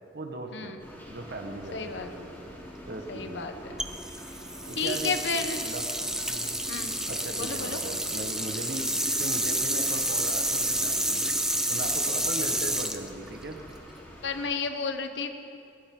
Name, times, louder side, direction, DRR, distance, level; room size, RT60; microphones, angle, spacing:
voice 1, 0.1-0.8 1.1-2.3 2.9-3.5 4.6-5.9 6.3-6.5 7.1-8.9 9.2-11.3 11.7-13.6, right 2 dB, 65° right, 4 dB, 1.4 m, -38 dB
sound 1, 0.8-14.5, equal, 15° left, 3.7 m, -46 dB
voice 2, 1.7-2.1 3.1-3.8 4.8-5.7 6.7-6.9 7.4-7.8 14.2-15.3, left 4 dB, 85° left, 7 dB, 1.0 m, -32 dB
sound 2, 3.8-14.0, right 1 dB, 5° right, 0.7 m, -29 dB
23.0 x 14.0 x 3.8 m, 2.6 s
head